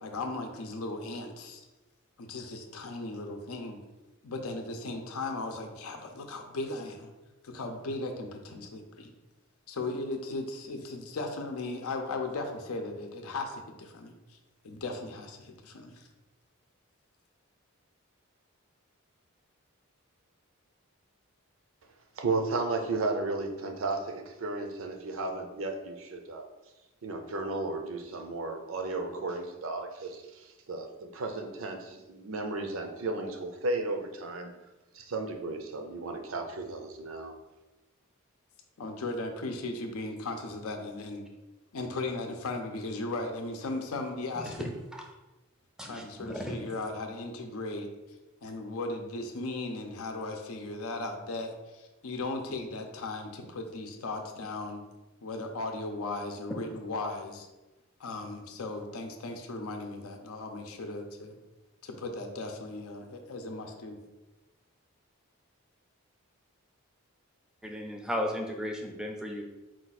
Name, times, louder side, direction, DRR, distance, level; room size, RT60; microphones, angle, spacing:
voice 1, 0.0-1.6 2.2-3.8 4.2-7.1 7.4-9.1 9.7-14.4 14.6-16.0 38.8-41.2 41.7-44.7 45.8-47.9 48.4-54.8 55.2-57.5 58.0-61.3 61.8-64.0, left 2 dB, 90° left, 4 dB, 0.6 m, -37 dB
voice 2, 22.2-26.5 27.0-34.5 34.9-37.3, right 3 dB, 65° right, 5 dB, 0.6 m, -34 dB
voice 3, 45.8-46.7 67.6-69.4, equal, 5° right, 2 dB, 0.4 m, -35 dB
4.5 x 2.4 x 4.0 m, 1.1 s
head